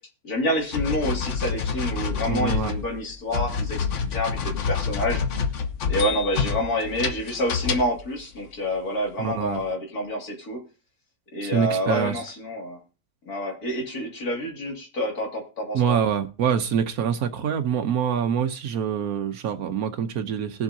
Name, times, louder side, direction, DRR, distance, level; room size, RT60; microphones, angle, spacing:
voice 1, 0.2-5.2 5.9-10.6 11.3-12.8 13.3-16.0, equal, 85° left, 3.0 m, -28 dB
sound 1, 0.7-8.1, left 6 dB, 60° left, 1.2 m, -27 dB
voice 2, 2.3-2.7 9.2-9.6 11.4-12.1 15.7-20.6, right 8 dB, 80° right, 1.2 m, -25 dB
20.0 x 7.3 x 2.7 m
omnidirectional pair, 1.6 m